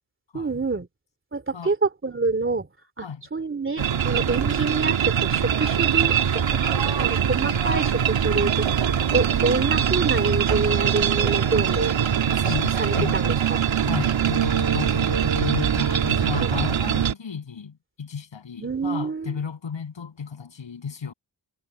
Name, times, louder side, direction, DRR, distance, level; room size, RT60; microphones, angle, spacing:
voice 1, 0.3-0.9 1.3-2.7 3.0-8.6 9.1-11.9 12.4-13.6 16.4-16.5 18.6-19.3, right 3 dB, 25° right, 2.8 m, -27 dB
sound 1, 3.8-17.1, right 8 dB, 85° right, 1.6 m, -22 dB
voice 2, 12.3-13.2 13.8-21.1, left 6 dB, 75° left, 7.6 m, -33 dB
wide cardioid pair, 120°, 45 cm